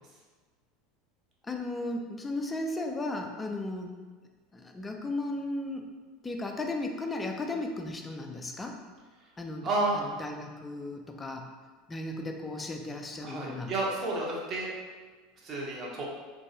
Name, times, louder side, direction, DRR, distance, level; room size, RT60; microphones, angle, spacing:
voice 1, 1.4-3.9 4.5-5.9 6.2-8.8 9.4-9.7 9.9-11.5 11.9-13.7, left 2 dB, 15° left, 3 dB, 0.3 m, -35 dB
voice 2, 9.6-10.0 13.2-14.7 15.4-16.0, right 2 dB, 35° right, -3 dB, 0.7 m, -31 dB
3.0 x 2.6 x 2.7 m, 1.4 s
figure-of-eight pair, 75°, 0 cm